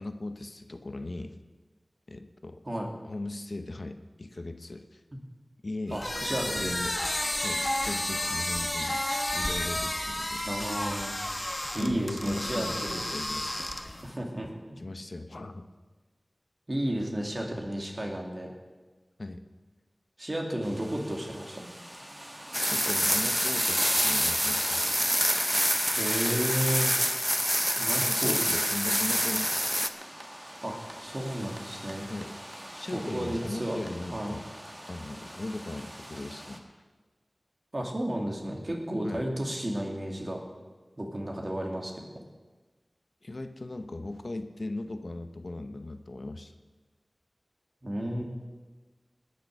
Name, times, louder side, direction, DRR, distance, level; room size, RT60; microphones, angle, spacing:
voice 1, 0.0-1.4 2.1-2.6 3.0-5.0 5.6-7.0 7.4-9.0 9.3-10.5 11.8-13.5 14.8-15.7 19.2-19.4 22.6-24.8 28.0-29.7 32.0-32.4 32.7-34.5 34.9-36.8 39.0-39.3 43.2-46.5, left 2 dB, 65° left, 8 dB, 0.8 m, -38 dB
sound 1, 5.9-14.1, left 1 dB, 30° left, 1.2 m, -32 dB
voice 2, 5.9-6.6 10.4-11.2 11.7-12.7 14.0-14.5 16.7-18.5 20.2-21.7 25.9-26.9 27.8-28.6 30.6-32.1 32.9-33.8 34.1-34.4 37.7-40.4 41.0-42.0 47.8-48.2, right 1 dB, 45° right, 0 dB, 2.5 m, -32 dB
sound 2, 20.6-36.6, equal, 20° right, 1.5 m, -46 dB
sound 3, 22.5-29.9, equal, 5° right, 0.7 m, -26 dB
19.0 x 6.7 x 6.5 m, 1.3 s
wide cardioid pair, 55°, 0 cm